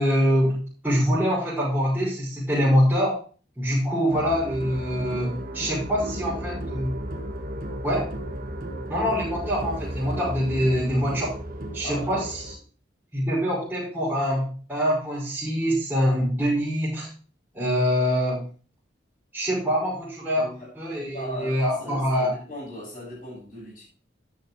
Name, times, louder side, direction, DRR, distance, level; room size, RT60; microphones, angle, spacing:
voice 1, 0.0-3.2 3.6-7.0 7.8-8.2 8.9-11.3 11.7-12.2 13.1-17.1 17.5-18.5 19.3-20.5 20.8-22.4, equal, 10° right, 5.8 m, -24 dB
sound 1, 4.1-12.6, right 1 dB, 45° right, 1.6 m, -34 dB
voice 2, 5.9-6.4 11.8-12.3 20.3-20.7 21.1-23.8, equal, 45° left, 6.7 m, -38 dB
13.0 x 9.6 x 3.2 m
head